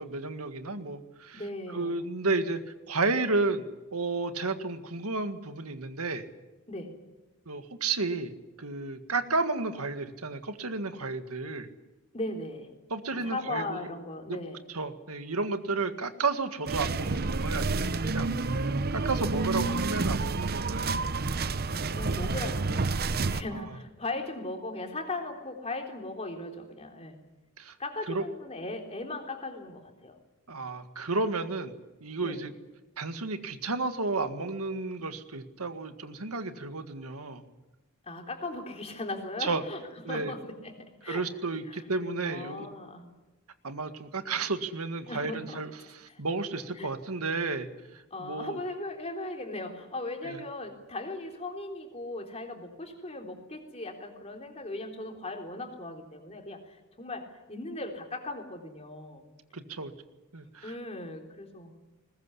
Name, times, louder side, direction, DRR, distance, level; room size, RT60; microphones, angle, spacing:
voice 1, 0.0-1.4 1.7-2.6 2.9-6.3 7.5-11.7 12.9-13.9 14.3-14.4 14.7-21.0 23.5-23.6 27.6-27.8 28.1-28.2 30.5-31.7 32.0-32.5 33.0-37.4 39.4-39.6 40.1-40.3 41.1-42.7 43.6-45.7 46.2-48.6 50.2-50.4 59.5-59.9 60.3-60.7, right 3 dB, 85° right, 8 dB, 1.9 m, -32 dB
voice 2, 1.3-2.0 6.7-7.0 12.1-12.7 13.1-14.6 21.7-23.0 23.3-27.2 27.8-30.2 32.2-32.4 38.0-41.3 41.7-41.8 42.2-43.1 45.1-45.6 46.1-46.2 46.8-46.9 48.1-59.2 60.6-61.7, left 2 dB, 30° left, 3 dB, 3.6 m, -38 dB
sound 1, 16.7-23.4, right 3 dB, 45° right, 0.8 m, -29 dB
21.0 x 20.5 x 9.9 m, 1.1 s
head